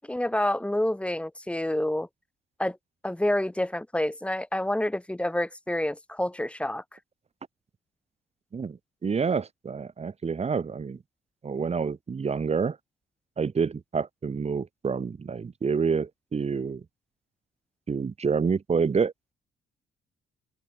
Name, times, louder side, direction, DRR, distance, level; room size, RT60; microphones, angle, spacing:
voice 1, 0.1-2.1 2.6-2.8 3.0-6.8, left 1 dB, 5° left, 1.0 m, -28 dB
voice 2, 8.5-11.0 11.4-12.8 13.4-16.8 17.9-19.1, right 5 dB, 30° right, 1.3 m, -28 dB
open air
cardioid pair, 90°, 20 cm